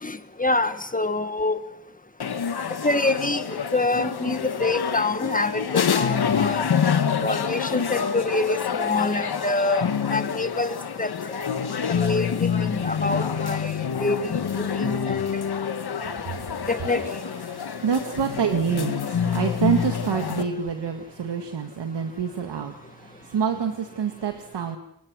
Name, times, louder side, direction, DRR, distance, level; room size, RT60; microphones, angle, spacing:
voice 1, 0.0-1.6 2.8-6.6 7.2-11.5 11.9-13.7 14.0-15.2 16.7-17.0, left 2 dB, 20° left, 10 dB, 1.7 m, -26 dB
sound 1, 2.2-20.4, left 7 dB, 60° left, 1.8 m, -27 dB
voice 2, 16.2-16.7 17.5-22.7 23.3-24.8, right 6 dB, 70° right, 5 dB, 2.0 m, -27 dB
29.5 x 22.0 x 6.4 m, 0.76 s
cardioid pair, 95°, 43 cm